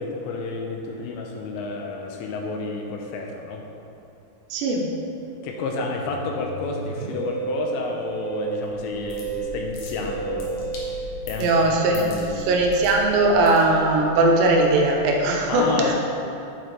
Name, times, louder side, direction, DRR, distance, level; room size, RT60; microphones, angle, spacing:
voice 1, 0.0-3.6 5.4-10.7 11.3-12.4 15.5-15.9, left 3 dB, 85° left, 1 dB, 3.0 m, -30 dB
voice 2, 4.5-4.9 11.4-15.9, right 2 dB, 80° right, 1 dB, 2.9 m, -19 dB
Musical instrument, 5.4-12.2, right 5 dB, 55° right, 2.9 m, -33 dB
sound 1, 8.6-14.1, left 1 dB, 65° left, 2.7 m, -40 dB
7.9 x 7.8 x 3.3 m, 2.7 s
omnidirectional pair, 5.2 m